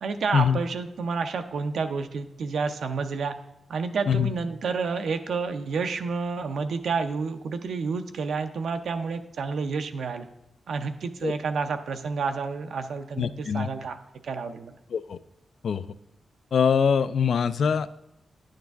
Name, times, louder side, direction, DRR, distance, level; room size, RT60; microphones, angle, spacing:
voice 1, 0.0-3.4 3.7-10.3 10.7-14.0 14.2-14.7, right 5 dB, 75° right, 8 dB, 0.5 m, -30 dB
voice 2, 13.2-13.7 14.9-15.2 15.6-15.9 16.5-17.9, left 7 dB, 70° left, 14 dB, 0.3 m, -23 dB
9.7 x 6.5 x 3.5 m, 0.83 s
wide cardioid pair, 105°, 0 cm